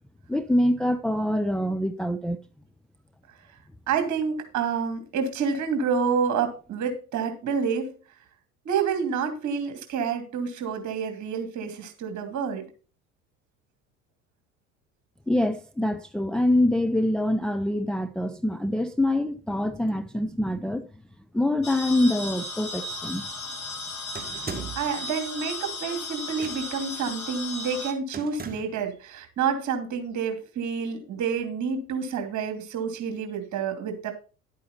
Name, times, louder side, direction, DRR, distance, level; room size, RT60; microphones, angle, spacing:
voice 1, 0.3-2.4 15.3-20.9 21.3-23.3 24.4-24.6, left 1 dB, ahead, 0.5 m, -25 dB
voice 2, 3.9-7.9 8.6-12.7 24.3-24.4 24.8-34.1, right 6 dB, 45° right, 2.8 m, -28 dB
sound 1, 21.6-27.9, left 2 dB, 85° left, 1.8 m, -35 dB
sound 2, 24.1-25.0 26.3-26.9 28.1-28.8, right 4 dB, 20° right, 2.0 m, -38 dB
11.0 x 8.5 x 4.2 m
figure-of-eight pair, 65°, 41 cm